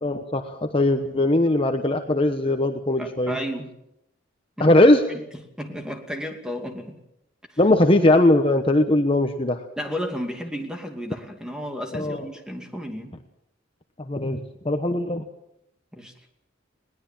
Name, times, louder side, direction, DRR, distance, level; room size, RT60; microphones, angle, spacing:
voice 1, 0.0-3.4 4.6-5.0 7.6-9.6 11.9-12.2 14.1-15.2, left 1 dB, 25° left, 5 dB, 1.1 m, -20 dB
voice 2, 3.0-3.7 4.6-4.7 5.6-7.0 7.5-7.6 9.8-13.1 15.9-16.1, equal, 5° right, 4 dB, 2.6 m, -33 dB
21.0 x 19.0 x 7.5 m, 0.80 s
head